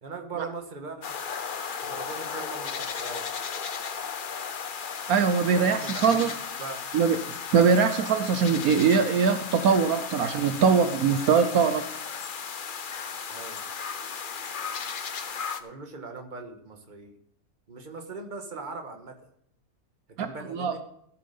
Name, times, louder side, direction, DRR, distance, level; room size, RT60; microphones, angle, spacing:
voice 1, 0.0-1.1 1.8-3.3 5.5-6.3 6.6-6.8 13.3-13.6 15.6-17.2 17.7-19.3 20.1-20.8, right 3 dB, 30° right, 5 dB, 1.5 m, -40 dB
sound 1, 1.0-15.6, left 6 dB, 45° left, 0.7 m, -35 dB
voice 2, 5.1-6.3 6.9-7.2 7.5-11.8 20.2-20.7, right 6 dB, 70° right, 9 dB, 1.2 m, -22 dB
14.5 x 7.6 x 5.4 m, 0.72 s
omnidirectional pair, 1.6 m